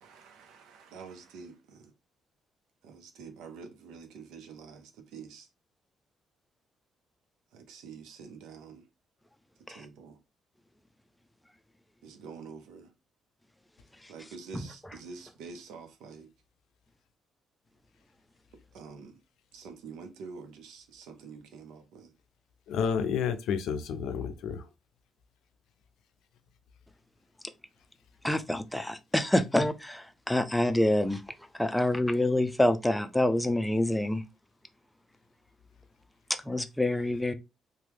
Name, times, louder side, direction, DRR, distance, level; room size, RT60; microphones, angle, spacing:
voice 1, 0.0-1.9 2.8-5.5 7.5-8.8 9.7-10.2 12.0-12.9 14.1-16.3 18.7-19.1 19.5-22.1, right 5 dB, 90° right, 0.6 m, -47 dB
voice 2, 22.7-24.6, left 7 dB, 85° left, 0.4 m, -30 dB
voice 3, 28.2-31.2 31.6-34.2 36.5-37.3, left 1 dB, 5° left, 0.4 m, -26 dB
2.9 x 2.2 x 3.4 m
cardioid pair, 90°, 0 cm